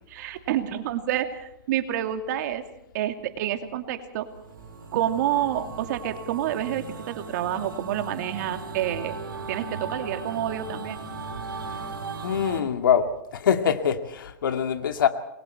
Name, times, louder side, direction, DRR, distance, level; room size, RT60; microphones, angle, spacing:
voice 1, 0.1-2.6 2.9-4.3 4.9-9.1 9.5-11.0, right 11 dB, 55° right, 6 dB, 2.6 m, -28 dB
sound 1, 4.3-12.6, right 4 dB, 85° right, 5.0 m, -37 dB
voice 2, 12.2-13.1 13.3-15.1, left 8 dB, 75° left, 6 dB, 2.2 m, -23 dB
28.0 x 22.0 x 4.5 m, 0.80 s
hypercardioid pair, 120°, 11 cm